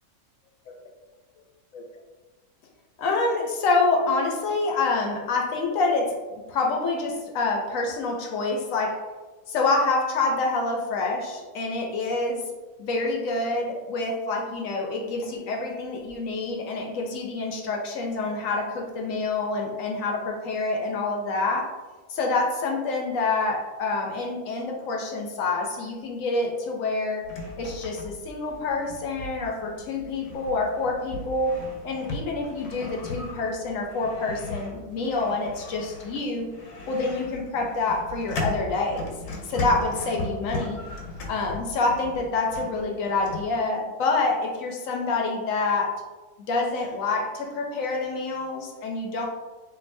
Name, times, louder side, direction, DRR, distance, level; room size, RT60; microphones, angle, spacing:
voice 1, 3.0-6.2 6.5-9.0 9.5-12.4 12.8-21.8 22.1-27.3 27.6-31.6 31.8-36.5 36.9-39.1 39.5-40.8 41.3-45.9 46.5-49.3, left 3 dB, 70° left, 1 dB, 0.9 m, -27 dB
sound 1, 27.2-43.5, left 2 dB, 85° left, 1.2 m, -37 dB
4.6 x 2.6 x 2.6 m, 1.2 s
omnidirectional pair, 1.6 m